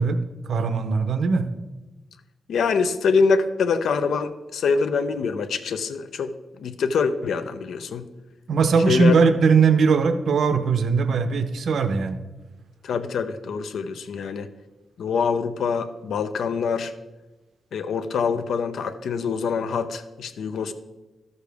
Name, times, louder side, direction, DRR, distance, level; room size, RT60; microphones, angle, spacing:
voice 1, 0.0-1.5 8.5-12.2, right 5 dB, 65° right, 9 dB, 0.7 m, -20 dB
voice 2, 2.5-8.1 8.9-9.1 12.8-14.5 15.0-16.9 17.7-20.7, left 5 dB, 85° left, 10 dB, 0.6 m, -25 dB
12.5 x 6.6 x 3.4 m, 1.1 s
wide cardioid pair, 160°, 0 cm